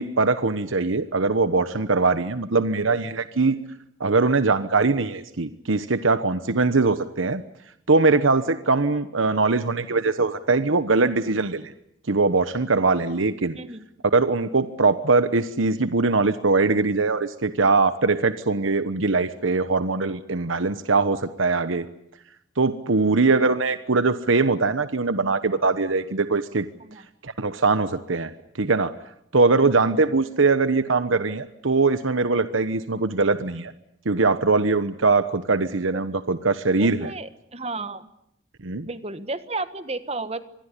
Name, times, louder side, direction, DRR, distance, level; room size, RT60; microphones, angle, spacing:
voice 1, 0.0-3.6 4.0-7.4 7.9-11.7 12.1-13.6 14.1-21.9 22.6-26.7 27.2-28.3 28.6-28.9 29.3-33.7 34.0-37.1 38.6-38.9, right 3 dB, 90° right, 12 dB, 1.1 m, -21 dB
voice 2, 13.5-13.9 26.8-27.0 35.9-36.0 36.7-38.1 38.9-40.4, right 3 dB, 30° right, 12 dB, 1.4 m, -33 dB
25.5 x 21.0 x 9.9 m, 0.76 s
head